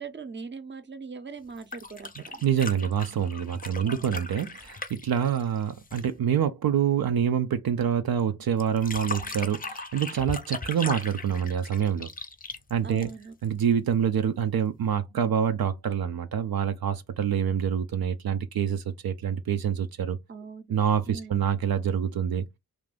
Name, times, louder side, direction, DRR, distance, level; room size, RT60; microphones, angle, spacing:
voice 1, 0.0-2.4 3.8-4.2 12.8-13.3 20.3-20.7 21.1-21.4, right 5 dB, 30° right, 0.6 m, -41 dB
sound 1, 1.5-6.2 8.6-13.5 14.9-15.0, left 3 dB, 25° left, 0.5 m, -38 dB
voice 2, 2.4-12.1 12.7-13.1 13.4-20.2 20.7-22.4, right 8 dB, 75° right, 0.5 m, -26 dB
2.6 x 2.5 x 3.3 m
wide cardioid pair, 75°, 36 cm